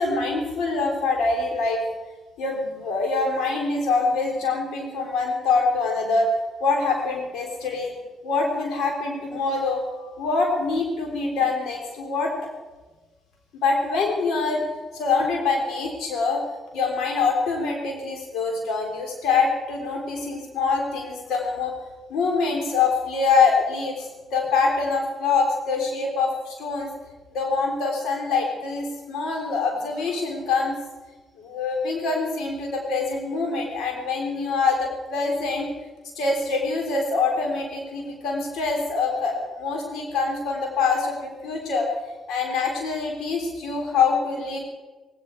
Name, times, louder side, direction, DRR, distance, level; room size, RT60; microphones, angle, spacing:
voice 1, 0.0-1.8 2.4-8.0 8.2-12.3 13.5-14.6 14.9-16.4 16.7-21.7 22.1-26.9 27.3-30.8 31.4-35.7 36.2-41.9 42.3-44.6, left 4 dB, 80° left, 2 dB, 3.6 m, -24 dB
17.0 x 17.0 x 4.7 m, 1.2 s
supercardioid pair, 50°, 0 cm